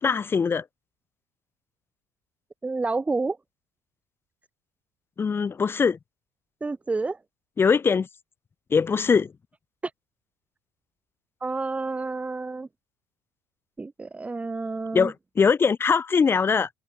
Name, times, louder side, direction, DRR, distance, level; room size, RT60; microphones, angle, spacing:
voice 1, 0.0-0.7 5.2-6.0 7.6-8.1 8.7-9.3 14.9-16.7, left 5 dB, 25° left, 1.8 m, -22 dB
voice 2, 2.6-3.4 6.6-7.2 9.8-9.9 11.4-12.7 13.8-15.1, right 3 dB, 15° right, 2.2 m, -29 dB
cardioid pair, 110°, 9 cm